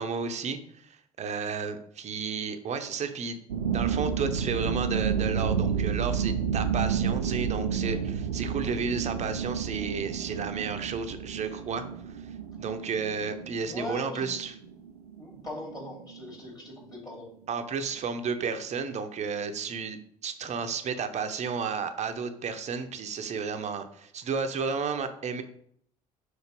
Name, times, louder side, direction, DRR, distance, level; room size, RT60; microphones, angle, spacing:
voice 1, 0.0-3.4 3.7-11.9 12.1-12.2 12.6-14.6 17.5-25.4, right 5 dB, 35° right, 8 dB, 0.8 m, -32 dB
sound 1, 3.5-16.3, right 7 dB, 85° right, 0.4 m, -31 dB
voice 2, 13.6-14.4 15.2-17.3, left 1 dB, 20° left, -2 dB, 2.8 m, -40 dB
5.1 x 4.1 x 5.2 m, 0.66 s
figure-of-eight pair, 60°, 19 cm